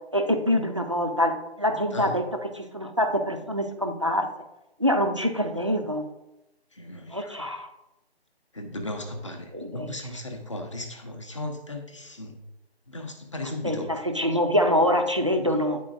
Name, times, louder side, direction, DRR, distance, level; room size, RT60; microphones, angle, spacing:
voice 1, 0.1-4.3 4.8-6.0 7.1-7.7 9.5-9.9 13.6-15.8, equal, 30° right, 5 dB, 0.4 m, -25 dB
voice 2, 6.7-7.4 8.5-12.4 12.9-13.9, left 1 dB, 30° left, 4 dB, 0.7 m, -36 dB
9.7 x 4.0 x 2.5 m, 0.94 s
figure-of-eight pair, 165°, 32 cm